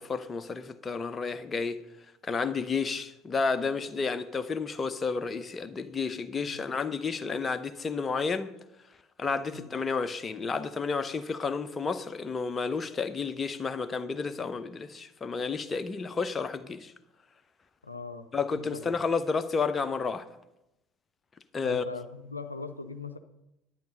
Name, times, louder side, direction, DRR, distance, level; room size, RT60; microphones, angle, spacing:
voice 1, 0.0-1.8 2.2-8.5 9.2-16.9 18.3-20.3 21.5-21.8, left 4 dB, 25° left, 0.7 m, -31 dB
voice 2, 17.8-18.3 18.5-18.9 21.6-23.2, left 4 dB, 85° left, 0.5 m, -40 dB
10.5 x 9.1 x 5.3 m
figure-of-eight pair, 65°, 0 cm